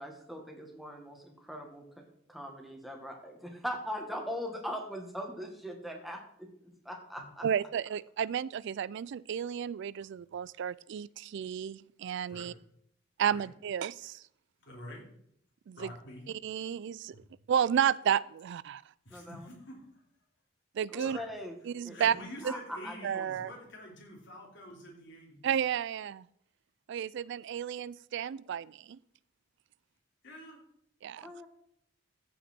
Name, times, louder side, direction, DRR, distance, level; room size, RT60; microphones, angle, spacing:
voice 1, 0.0-2.0 2.3-7.5 19.1-19.4 20.9-21.5 21.8-22.1 22.4-23.2 31.2-31.5, equal, ahead, 1.6 m, -41 dB
voice 2, 7.4-12.5 13.2-14.2 15.7-15.9 16.3-17.2 17.5-18.8 20.8-21.2 21.7-22.1 22.4-22.5 23.0-23.5 25.4-26.3 26.9-29.0 31.0-31.3, right 8 dB, 60° right, 0.3 m, -32 dB
voice 3, 14.6-15.0 15.8-16.2 17.1-17.2 19.0-19.8 21.0-21.2 21.9-25.5 30.2-30.6, left 1 dB, 65° left, 3.3 m, -47 dB
14.5 x 5.5 x 4.4 m
head